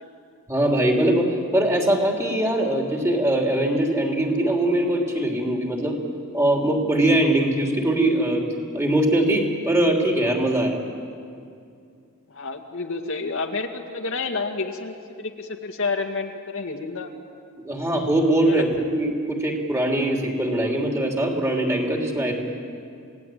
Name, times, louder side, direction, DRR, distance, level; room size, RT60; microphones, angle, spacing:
voice 1, 0.5-6.0 6.3-8.4 8.7-10.8 17.6-22.4, right 1 dB, 15° right, 1 dB, 3.3 m, -22 dB
voice 2, 12.3-17.1 18.4-18.7, left 4 dB, 65° left, 4 dB, 2.0 m, -29 dB
28.5 x 18.5 x 9.3 m, 2.4 s
head